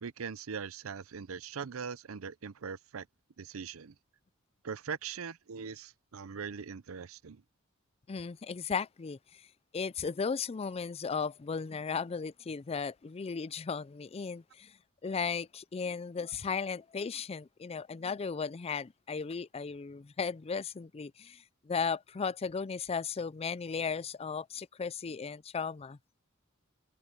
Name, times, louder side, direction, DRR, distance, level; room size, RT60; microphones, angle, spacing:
voice 1, 0.0-3.1 3.4-3.9 4.6-7.4, right 6 dB, 80° right, 0.6 m, -41 dB
voice 2, 8.1-9.5 9.7-26.0, left 5 dB, 30° left, 0.4 m, -36 dB
head